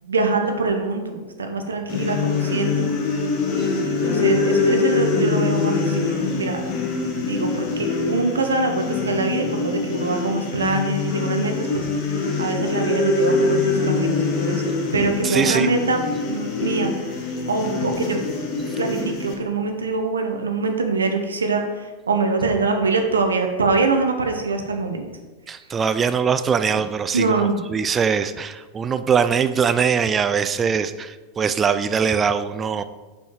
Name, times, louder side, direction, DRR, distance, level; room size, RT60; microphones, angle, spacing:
voice 1, 0.0-2.9 3.5-6.6 7.1-11.9 12.4-16.9 17.5-18.2 18.8-25.1 27.1-27.6, right 3 dB, 70° right, 4 dB, 0.7 m, -24 dB
sound 1, 1.9-19.3, left 4 dB, 35° left, 1.1 m, -24 dB
voice 2, 15.2-15.7 25.5-32.8, right 6 dB, 20° right, 11 dB, 0.3 m, -22 dB
5.4 x 4.5 x 4.5 m, 1.3 s
figure-of-eight pair, 90°, 0 cm